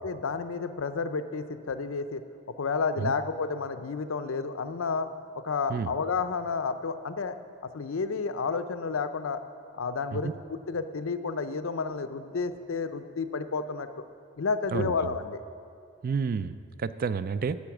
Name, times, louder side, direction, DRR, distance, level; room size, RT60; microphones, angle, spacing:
voice 1, 0.0-2.2 2.6-5.1 5.4-7.4 7.7-9.4 9.7-10.3 10.7-13.9 14.4-15.4, left 4 dB, 90° left, 10 dB, 0.6 m, -31 dB
voice 2, 14.7-15.1 16.0-17.6, right 5 dB, 45° right, 14 dB, 0.3 m, -30 dB
11.5 x 7.1 x 6.0 m, 2.3 s
head